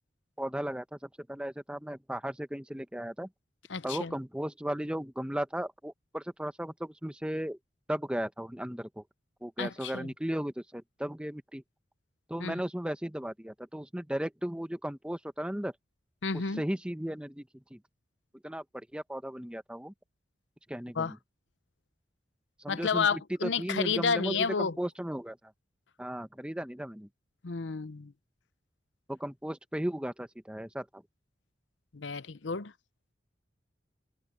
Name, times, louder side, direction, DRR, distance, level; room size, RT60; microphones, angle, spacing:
voice 1, 0.4-3.3 3.8-7.6 7.9-9.0 9.4-11.6 12.3-15.7 16.3-17.8 18.4-19.9 20.7-21.2 22.6-25.4 26.0-27.1 29.1-31.0, equal, 5° right, 1.0 m, -36 dB
voice 2, 3.7-4.1 9.6-10.1 12.4-12.6 16.2-16.6 21.0-21.1 22.7-24.8 27.4-28.1 31.9-32.7, left 5 dB, 85° left, 0.8 m, -31 dB
head